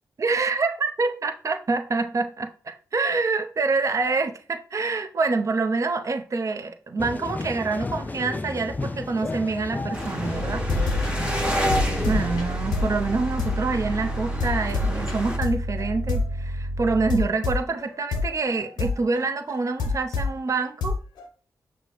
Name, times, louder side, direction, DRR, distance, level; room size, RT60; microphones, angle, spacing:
voice 1, 0.2-10.7 12.1-21.0, right 3 dB, 50° right, 0.5 m, -26 dB
sound 1, 7.0-12.4, left 2 dB, 25° left, 0.3 m, -32 dB
sound 2, 9.9-15.4, equal, 15° right, 1.2 m, -31 dB
sound 3, 10.3-20.4 20.8-21.3, left 2 dB, 90° left, 0.6 m, -28 dB
6.1 x 2.1 x 2.9 m
supercardioid pair, 40°, 7 cm